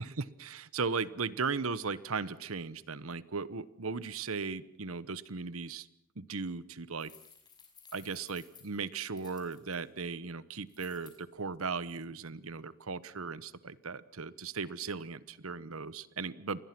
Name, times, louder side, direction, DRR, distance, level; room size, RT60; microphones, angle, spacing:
voice 1, 0.0-5.9 6.2-7.1 7.9-16.6, right 4 dB, 70° right, 17 dB, 1.1 m, -37 dB
sound 1, 7.0-9.8 10.7-11.2, left 6 dB, 20° left, 5.6 m, -57 dB
29.5 x 21.5 x 6.1 m, 0.71 s
head